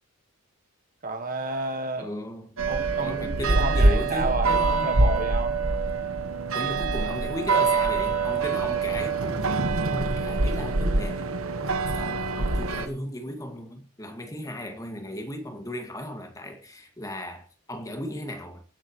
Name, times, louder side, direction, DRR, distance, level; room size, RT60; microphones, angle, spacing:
voice 1, 1.0-2.1 2.7-5.6, right 3 dB, 40° right, 1.6 m, -31 dB
voice 2, 2.0-2.6 3.0-5.0 6.5-9.5 9.9-11.3 12.0-18.6, equal, 15° left, 2.0 m, -36 dB
sound 1, 2.6-12.9, right 3 dB, 70° right, 1.3 m, -25 dB
24.0 x 8.2 x 3.1 m
head